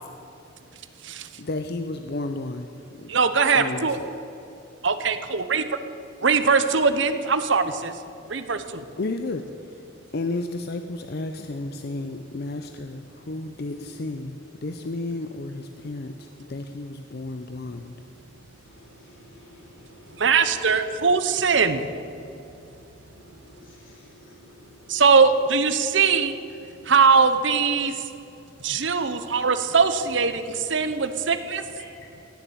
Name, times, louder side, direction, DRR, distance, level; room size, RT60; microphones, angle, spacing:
voice 1, 1.4-2.7 3.5-4.1 9.0-9.4 10.1-13.0 13.3-14.3 14.6-16.1 16.5-17.9, left 2 dB, 55° left, 7 dB, 0.6 m, -32 dB
voice 2, 3.1-4.0 4.8-5.6 6.2-7.9 8.3-8.8 20.2-21.8 24.9-26.3 26.9-27.9 28.6-31.6, right 5 dB, 70° right, 11 dB, 0.9 m, -21 dB
voice 3, 18.7-20.2 23.1-25.0 31.7-31.9, left 1 dB, 90° left, -3 dB, 4.2 m, -50 dB
17.0 x 7.3 x 8.5 m, 2.7 s
head